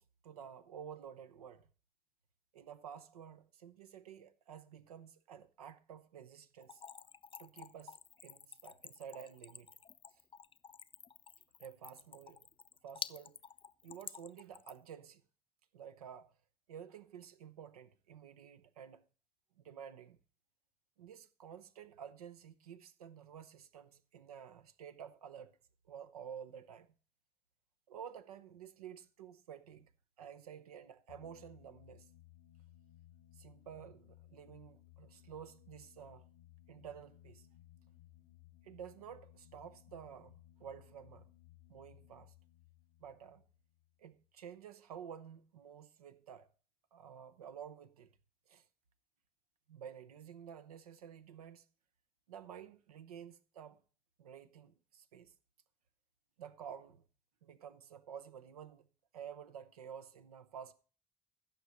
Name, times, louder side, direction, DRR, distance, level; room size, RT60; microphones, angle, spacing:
voice 1, 0.0-1.7 2.5-6.8 7.4-9.7 10.1-10.2 11.6-12.5 12.8-13.4 13.8-15.2 15.7-16.3 16.7-19.0 19.6-20.2 21.0-25.6 25.8-26.9 27.9-29.9 30.2-32.1 33.3-36.3 36.7-37.5 38.6-41.3 41.7-42.3 43.0-43.4 44.0-46.5 46.9-48.1 48.5-48.6 49.7-51.7 52.3-53.8 54.2-55.3 56.4-57.1 57.4-58.9 59.1-60.7, right 8 dB, 80° right, 0.7 m, -51 dB
Splash splatter / Trickle dribble, 6.6-14.9, left 6 dB, 30° left, 0.5 m, -50 dB
sound 1, 31.1-44.3, left 15 dB, 75° left, 1.4 m, -61 dB
15.5 x 6.6 x 4.1 m
figure-of-eight pair, 45°, 19 cm